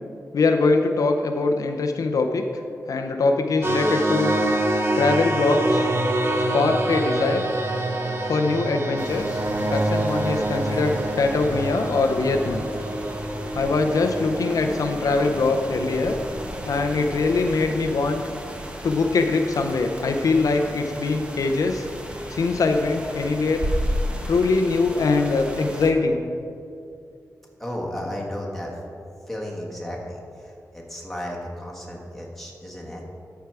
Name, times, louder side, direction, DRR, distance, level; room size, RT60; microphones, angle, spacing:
voice 1, 0.3-2.4 2.9-4.4 5.0-5.9 6.5-7.4 8.3-9.4 9.7-12.7 13.5-16.1 16.7-18.2 18.8-21.9 22.3-23.6 24.3-26.2, left 3 dB, 70° left, 4 dB, 0.5 m, -22 dB
sound 1, 3.6-16.8, right 1 dB, 40° right, 0.8 m, -26 dB
sound 2, 9.0-25.9, equal, 20° right, 0.9 m, -34 dB
voice 2, 27.6-28.7 29.3-33.0, left 1 dB, 5° left, -3 dB, 1.5 m, -34 dB
13.0 x 4.6 x 4.7 m, 2.5 s
wide cardioid pair, 125°, 6 cm